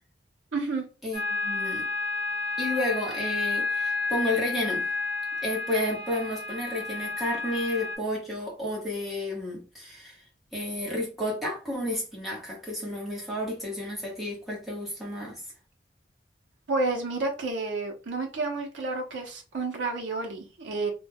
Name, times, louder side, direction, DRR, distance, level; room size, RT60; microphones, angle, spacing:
voice 1, 0.5-0.8 16.7-20.9, right 3 dB, 85° right, 0.6 m, -30 dB
voice 2, 1.0-1.9 2.6-4.9 5.4-10.2 10.5-15.4, left 1 dB, ahead, 0.9 m, -31 dB
sound 1, 1.1-8.0, left 3 dB, 55° right, 0.9 m, -31 dB
2.2 x 2.2 x 3.3 m
head